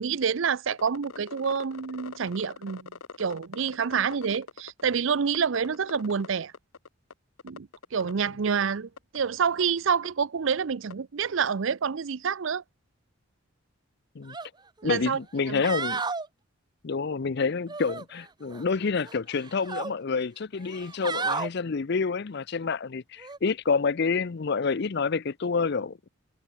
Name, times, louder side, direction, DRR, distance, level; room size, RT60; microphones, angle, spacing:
voice 1, 0.0-2.9 3.2-6.5 7.4-12.6 14.8-15.2 15.5-15.6, right 6 dB, 65° right, 0.5 m, -28 dB
sound 1, 0.7-4.8 5.1-6.3 6.5-7.1 7.4-8.1 8.6-8.7 9.0-9.2 9.6-9.7 10.0-10.1 10.9-11.0, left 5 dB, 80° left, 0.9 m, -43 dB
sound 2, 14.3-14.5 14.9-15.0 15.5-16.3 17.7-18.6 19.0-19.9 20.6-21.5 23.2-23.4, right 4 dB, 20° right, 0.6 m, -33 dB
voice 2, 14.8-16.0 16.8-26.1, left 4 dB, 50° left, 0.5 m, -28 dB
head